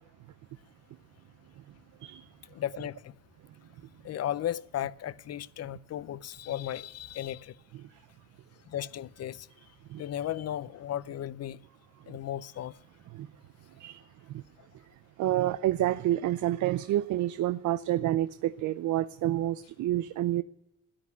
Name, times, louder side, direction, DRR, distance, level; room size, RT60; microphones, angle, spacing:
voice 1, 2.5-3.1 4.0-7.6 8.7-9.5 10.0-11.6 12.1-12.8, left 11 dB, 55° left, 0.7 m, -35 dB
voice 2, 13.8-14.4 15.2-20.4, right 13 dB, 75° right, 0.6 m, -29 dB
14.0 x 10.5 x 8.3 m
cardioid pair, 90°, 30 cm